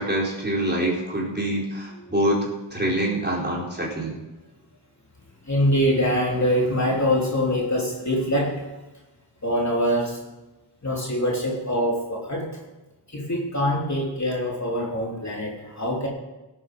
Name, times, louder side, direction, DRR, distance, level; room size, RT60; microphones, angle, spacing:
voice 1, 0.0-2.4 2.7-4.2, right 1 dB, 20° right, -4 dB, 4.4 m, -25 dB
voice 2, 5.4-8.6 9.4-10.2 10.8-12.5 13.1-16.1, equal, 35° left, -2 dB, 3.3 m, -24 dB
17.0 x 8.7 x 5.4 m, 1.1 s
wide cardioid pair, 65°, 46 cm